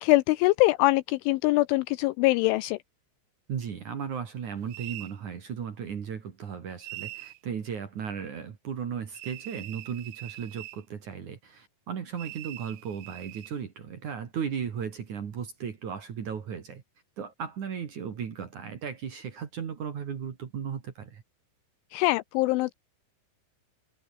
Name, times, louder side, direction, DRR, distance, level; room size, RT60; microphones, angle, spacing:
voice 1, 0.0-2.8 21.9-22.7, left 20 dB, 85° left, 2.8 m, -23 dB
voice 2, 3.5-16.8 17.2-21.2, right 7 dB, 50° right, 2.8 m, -36 dB
sound 1, 4.7-5.2 6.8-7.4 9.1-10.8 12.2-13.6, right 18 dB, 80° right, 3.1 m, -43 dB
omnidirectional pair, 6.0 m